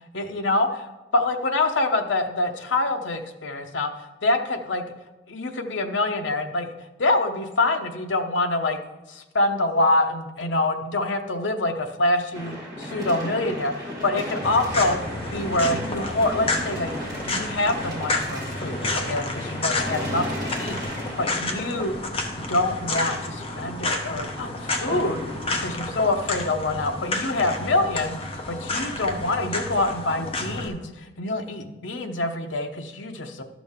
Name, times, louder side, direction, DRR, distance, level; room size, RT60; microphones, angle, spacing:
voice 1, 0.1-3.9 4.2-4.8 5.3-6.7 7.0-8.8 9.1-15.0 15.3-20.3 20.6-21.9 22.4-25.2 25.6-30.9 31.2-33.4, left 2 dB, 75° left, 5 dB, 0.8 m, -25 dB
sound 1, 12.3-25.5, equal, 20° right, 2.2 m, -35 dB
sound 2, 14.4-30.7, left 2 dB, 30° left, 0.8 m, -30 dB
12.0 x 6.1 x 3.6 m, 1.0 s
head